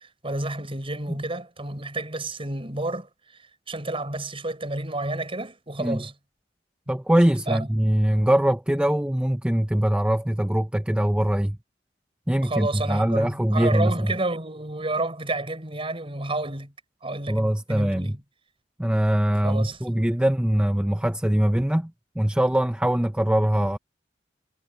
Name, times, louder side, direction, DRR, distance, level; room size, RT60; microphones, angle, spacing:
voice 1, 0.0-3.1 3.7-6.1 7.5-7.7 12.4-16.7 17.0-18.2 19.4-20.1, right 2 dB, 30° right, 6.8 m, -30 dB
voice 2, 6.9-11.6 12.3-14.1 17.3-18.2 18.8-21.9 22.2-23.8, right 1 dB, 5° right, 0.6 m, -22 dB
head